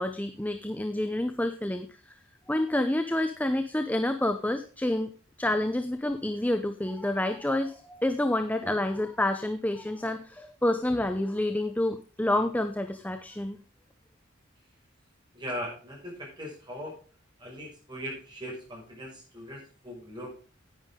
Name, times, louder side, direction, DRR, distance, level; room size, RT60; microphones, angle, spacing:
voice 1, 0.0-1.9 2.5-5.1 5.4-13.6, left 1 dB, 10° left, 7 dB, 0.7 m, -28 dB
voice 2, 15.3-17.0 17.4-20.4, equal, 20° right, -2 dB, 5.7 m, -39 dB
10.5 x 9.4 x 3.7 m, 0.39 s
head